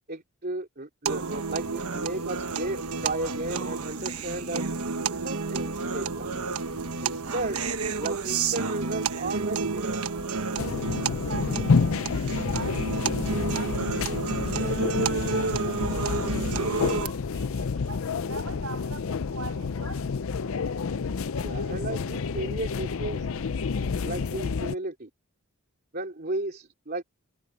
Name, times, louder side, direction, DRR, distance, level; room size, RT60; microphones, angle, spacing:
voice 1, 0.1-4.6 5.2-6.5 7.0-7.6 8.0-10.0 21.4-23.3 24.0-25.1 25.9-27.0, right 2 dB, 45° right, 2.8 m, -34 dB
sound 1, 1.1-17.1, right 4 dB, 85° right, 1.3 m, -30 dB
sound 2, 1.6-16.6, equal, 15° right, 7.1 m, -47 dB
sound 3, 10.6-24.7, left 5 dB, 65° left, 0.5 m, -29 dB
voice 2, 11.2-16.4 16.9-20.1, right 4 dB, 70° right, 6.6 m, -44 dB
head